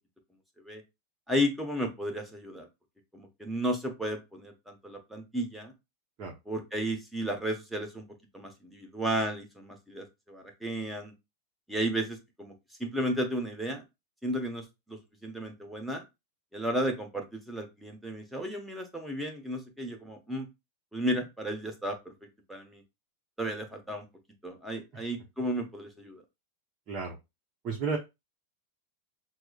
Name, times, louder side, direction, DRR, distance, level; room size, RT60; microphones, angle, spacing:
voice 1, 1.3-2.7 3.1-5.7 6.5-8.0 8.3-11.1 11.7-12.5 12.8-13.8 14.2-16.0 16.5-20.5 20.9-22.1 22.5-22.8 23.4-24.0 24.4-26.2, equal, 5° right, 3 dB, 0.9 m, -33 dB
voice 2, 27.6-28.0, right 5 dB, 35° right, -2 dB, 0.9 m, -32 dB
5.8 x 2.0 x 2.3 m, 0.23 s
figure-of-eight pair, 90°, 0 cm